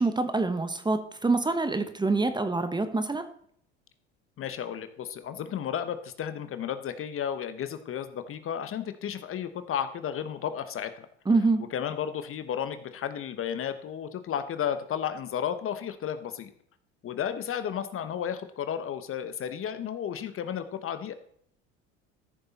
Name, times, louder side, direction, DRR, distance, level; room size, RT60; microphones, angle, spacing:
voice 1, 0.0-3.2 11.3-11.6, right 3 dB, 15° right, 9 dB, 1.1 m, -26 dB
voice 2, 4.4-11.1 11.7-16.5 17.0-21.1, left 9 dB, 40° left, 10 dB, 1.0 m, -33 dB
14.0 x 6.8 x 4.1 m, 0.66 s
hypercardioid pair, 85°, 34 cm